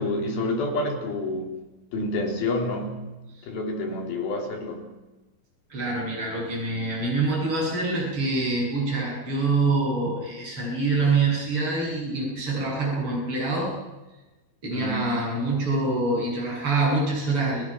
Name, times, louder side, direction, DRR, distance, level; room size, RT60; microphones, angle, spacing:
voice 1, 0.0-1.6 1.9-3.0 3.4-4.9 14.7-15.2, left 2 dB, 80° left, 2 dB, 5.3 m, -28 dB
voice 2, 5.7-13.8 14.6-17.7, right 3 dB, 35° right, -3 dB, 8.8 m, -25 dB
30.0 x 18.0 x 6.1 m, 1.1 s
omnidirectional pair, 4.3 m